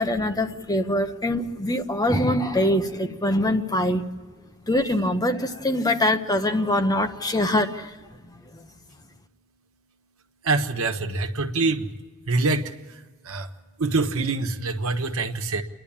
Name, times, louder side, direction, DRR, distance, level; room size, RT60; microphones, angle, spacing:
voice 1, 0.0-4.1 4.7-7.9, left 1 dB, 20° left, 6 dB, 1.0 m, -23 dB
voice 2, 10.5-11.9 12.3-12.7 13.3-13.5 13.8-15.6, right 3 dB, 75° right, 5 dB, 1.4 m, -24 dB
28.5 x 11.0 x 8.7 m, 1.4 s
head